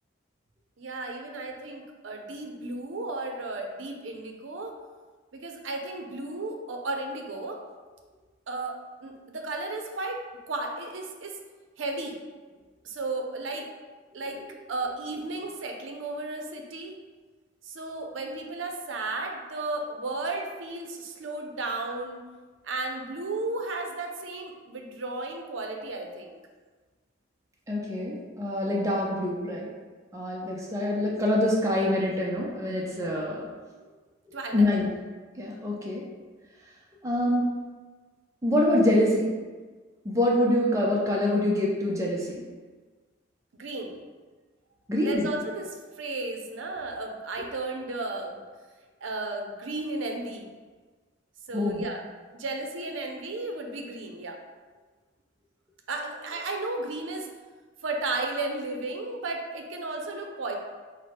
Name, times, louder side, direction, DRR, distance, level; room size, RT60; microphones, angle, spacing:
voice 1, 0.8-4.8 5.4-7.6 8.5-11.3 11.8-12.2 12.8-13.6 14.1-14.4 14.7-16.9 17.6-22.2 22.6-26.3 34.3-34.7 43.6-44.0 45.0-48.4 49.0-50.5 51.5-52.0 52.3-54.4 55.9-57.3 57.8-60.5, right 2 dB, 75° right, 3 dB, 0.6 m, -34 dB
voice 2, 27.7-29.7 30.1-33.5 34.5-34.9 35.4-36.0 37.0-37.5 38.4-39.4 40.0-42.4 44.9-45.3 51.5-51.8, left 1 dB, 15° right, -3 dB, 0.5 m, -25 dB
4.6 x 2.1 x 4.4 m, 1.4 s
head